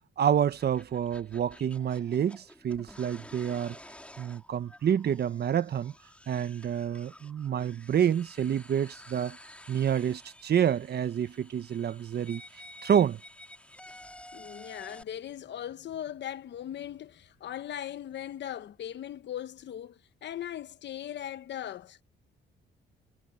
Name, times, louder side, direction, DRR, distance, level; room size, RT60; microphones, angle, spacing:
voice 1, 0.2-3.8 4.2-5.9 6.3-9.4 9.7-13.2, right 9 dB, 55° right, 1.2 m, -28 dB
sound 1, 0.5-15.0, left 1 dB, 5° left, 4.1 m, -51 dB
voice 2, 14.3-22.0, left 11 dB, 65° left, 1.1 m, -39 dB
cardioid pair, 90°, 20 cm